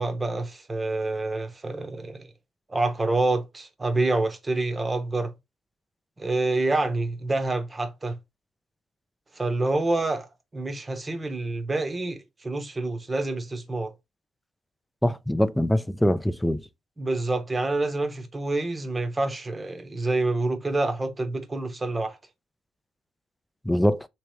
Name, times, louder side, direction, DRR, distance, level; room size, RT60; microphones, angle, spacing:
voice 1, 0.0-2.3 2.7-5.3 6.2-8.2 9.3-13.9 17.0-22.2, right 2 dB, 20° right, 0.8 m, -27 dB
voice 2, 15.0-16.6 23.7-24.1, equal, 5° left, 0.4 m, -23 dB
3.2 x 3.1 x 3.0 m
cardioid pair, 85°, 0 cm